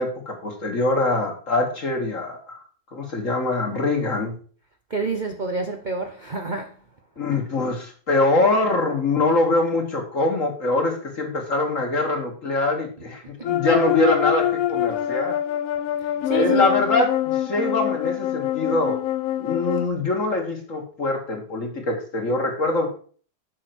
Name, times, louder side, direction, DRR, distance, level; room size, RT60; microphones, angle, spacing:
voice 1, 0.0-2.6 2.9-4.3 7.2-15.4 16.3-19.0 19.4-22.9, left 2 dB, 45° left, 2.5 m, -23 dB
voice 2, 4.9-6.7 13.4-13.5 16.0-16.7, right 3 dB, 40° right, 0.7 m, -28 dB
sound 1, 13.4-19.9, left 12 dB, 65° left, 0.8 m, -25 dB
7.5 x 6.2 x 6.1 m
omnidirectional pair, 2.0 m